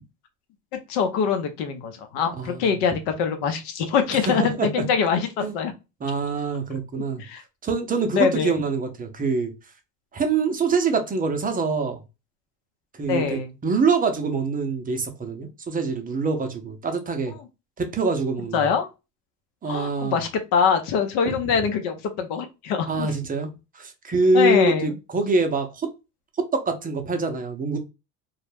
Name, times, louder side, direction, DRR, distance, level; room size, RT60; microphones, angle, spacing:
voice 1, 0.9-5.3 5.5-5.7 7.2-7.4 8.1-8.6 13.1-13.5 18.5-18.9 19.7-23.1 24.3-25.0, left 6 dB, 65° left, 0.7 m, -24 dB
voice 2, 2.4-2.7 4.3-4.7 5.4-5.6 6.0-7.2 7.6-9.5 10.1-12.0 13.0-17.3 17.8-18.7 19.6-20.2 21.3-21.4 22.9-25.9 26.7-27.8, right 3 dB, 20° right, 0.6 m, -25 dB
2.3 x 2.0 x 3.2 m
hypercardioid pair, 90°, 44 cm